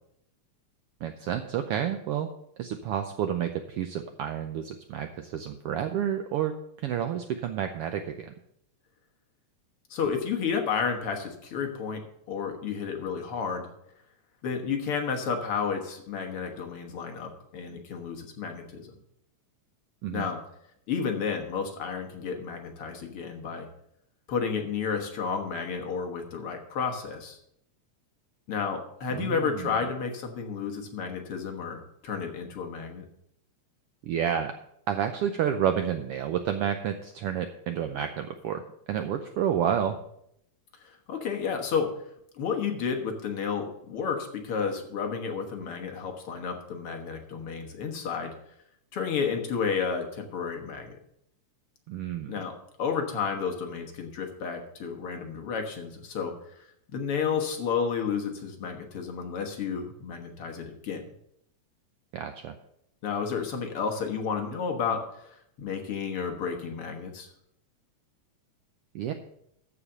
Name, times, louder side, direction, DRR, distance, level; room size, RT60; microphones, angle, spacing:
voice 1, 1.0-2.3 2.6-8.3 20.0-20.2 29.1-29.7 34.0-34.5 34.9-38.6 38.9-40.0 51.9-52.4 62.1-62.5 68.9-69.1, right 9 dB, 80° right, 7 dB, 1.3 m, -30 dB
voice 2, 9.9-13.7 14.4-18.9 20.1-20.4 20.9-23.7 24.3-27.4 28.5-33.1 40.8-41.9 42.3-48.3 48.9-51.0 52.3-56.7 56.9-61.0 63.0-67.3, left 6 dB, 55° left, 4 dB, 1.9 m, -31 dB
14.0 x 5.0 x 6.7 m, 0.75 s
omnidirectional pair, 3.4 m